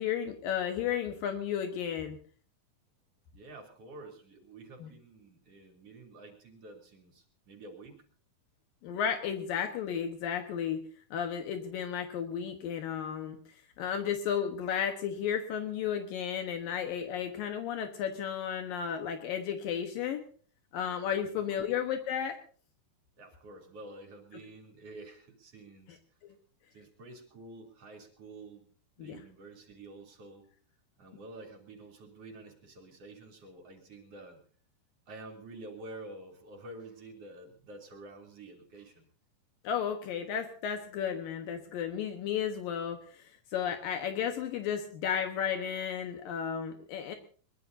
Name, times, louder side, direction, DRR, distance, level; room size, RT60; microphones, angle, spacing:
voice 1, 0.0-2.2 4.8-4.9 8.8-10.8 11.1-13.4 13.8-20.2 20.7-22.4 26.2-26.3 29.0-29.2 39.6-47.2, left 8 dB, 75° left, 5 dB, 2.9 m, -33 dB
voice 2, 3.3-8.0 21.4-21.6 23.2-26.0 26.7-28.7 29.0-30.5 31.0-34.4 35.1-39.1, right 2 dB, 45° right, 3 dB, 4.1 m, -49 dB
22.0 x 21.5 x 2.7 m, 0.43 s
omnidirectional pair, 4.1 m